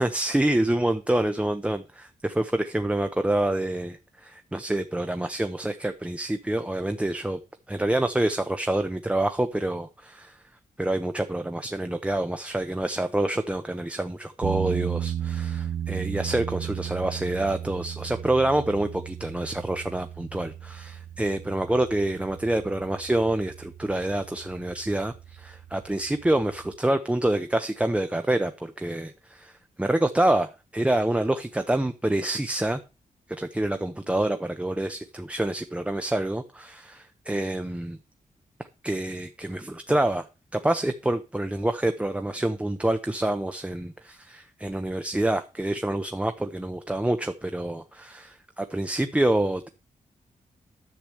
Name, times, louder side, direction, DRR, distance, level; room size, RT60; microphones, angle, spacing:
voice 1, 0.0-4.0 4.2-7.4 7.7-10.4 10.8-29.5 29.8-32.8 33.3-38.0 38.8-40.2 40.5-49.7, right 1 dB, 10° right, 0.8 m, -27 dB
sound 1, 14.4-26.7, right 10 dB, 85° right, 0.6 m, -35 dB
10.5 x 4.9 x 7.7 m
wide cardioid pair, 100°, 14 cm